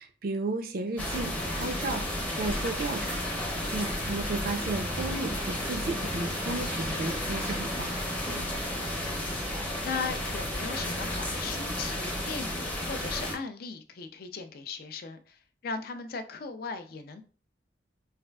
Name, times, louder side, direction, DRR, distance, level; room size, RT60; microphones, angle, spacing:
voice 1, 0.0-7.9, right 2 dB, 55° right, 0.4 m, -34 dB
sound 1, 1.0-13.3, left 1 dB, 10° left, 0.6 m, -32 dB
voice 2, 8.3-9.5 9.8-17.2, left 5 dB, 55° left, 0.4 m, -38 dB
4.2 x 2.3 x 2.2 m
head